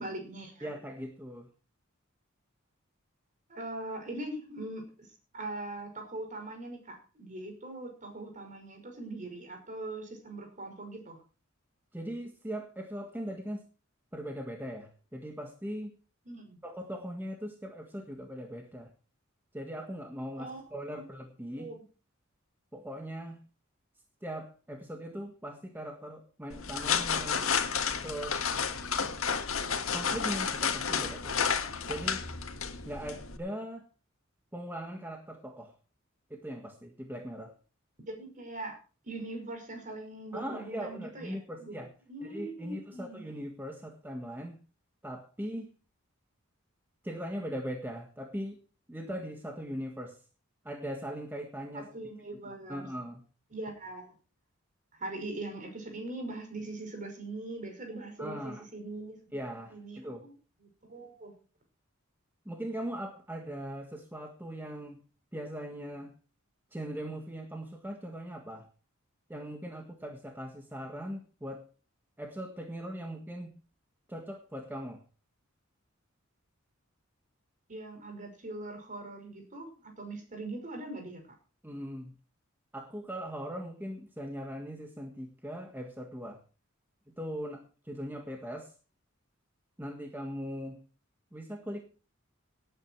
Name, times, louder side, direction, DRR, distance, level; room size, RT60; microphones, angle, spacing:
voice 1, 0.0-0.7 3.5-5.1 5.3-11.2 16.3-16.6 20.4-21.0 21.5-21.8 38.1-38.8 39.0-41.8 42.1-43.2 51.7-52.9 53.5-54.1 54.9-59.4 59.7-60.3 60.6-61.3 77.7-81.2, right 2 dB, 40° right, 4 dB, 5.7 m, -41 dB
voice 2, 0.6-1.5 11.9-13.6 14.1-15.9 16.6-18.9 19.5-21.7 22.7-23.4 24.2-27.5 28.0-28.4 29.9-31.6 31.9-32.2 32.8-33.9 34.5-35.7 36.3-37.6 40.3-41.9 42.2-44.6 45.0-45.7 47.0-48.6 48.9-50.2 50.6-51.9 52.7-53.2 58.2-58.6 59.3-60.2 62.4-65.0 65.3-66.1 66.7-68.7 69.3-71.7 72.2-73.6 74.1-75.0 81.6-82.1 82.7-86.4 87.2-88.7 89.8-90.8 91.3-91.8, equal, 10° right, 3 dB, 1.6 m, -40 dB
sound 1, 26.5-33.4, left 6 dB, 90° left, 1.8 m, -31 dB
18.5 x 9.2 x 4.6 m, 0.36 s
head